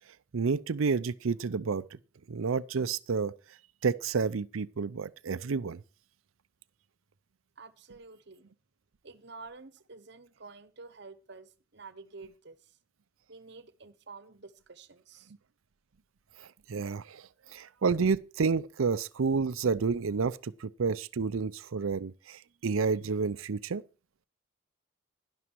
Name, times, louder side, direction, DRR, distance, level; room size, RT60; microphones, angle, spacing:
voice 1, 0.3-1.8 2.3-3.3 3.8-5.8 16.4-23.8, right 5 dB, 90° right, 0.6 m, -30 dB
voice 2, 7.6-8.4 9.0-12.8 13.3-15.3 22.5-22.6, right 4 dB, 60° right, 1.1 m, -50 dB
11.5 x 11.0 x 4.6 m
head